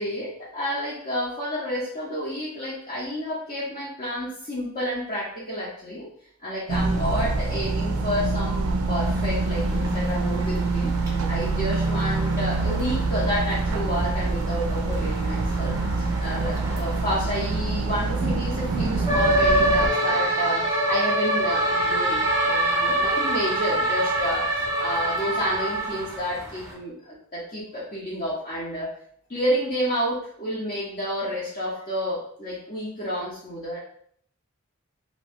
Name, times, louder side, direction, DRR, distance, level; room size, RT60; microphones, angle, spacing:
voice 1, 0.0-6.1 6.4-10.9 11.3-24.5 24.8-28.9 29.3-33.8, equal, 40° left, -9 dB, 0.7 m, -30 dB
sound 1, 6.7-19.9, right 3 dB, 85° right, 0.4 m, -26 dB
sound 2, 9.0-26.7, right 1 dB, 15° right, 0.5 m, -27 dB
2.6 x 2.2 x 3.3 m, 0.63 s
head